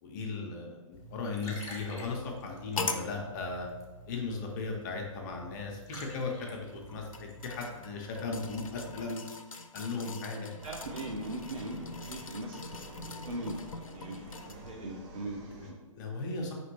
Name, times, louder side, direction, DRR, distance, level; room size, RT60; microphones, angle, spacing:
voice 1, 0.0-3.7 4.1-9.2 9.7-10.5 15.5-16.5, left 3 dB, 35° left, 0 dB, 0.6 m, -37 dB
Liquid, 0.9-9.0, equal, 15° left, 1.0 m, -49 dB
sound 1, 2.8-3.1 4.1-4.2 6.7-14.7 15.2-15.3, left 3 dB, 85° left, 0.4 m, -42 dB
voice 2, 10.3-15.8, right 1 dB, 85° right, 0 dB, 0.6 m, -40 dB
sound 2, 10.6-15.7, right 1 dB, 30° right, 0.6 m, -49 dB
5.0 x 3.0 x 3.0 m, 1.3 s
figure-of-eight pair, 130°, 17 cm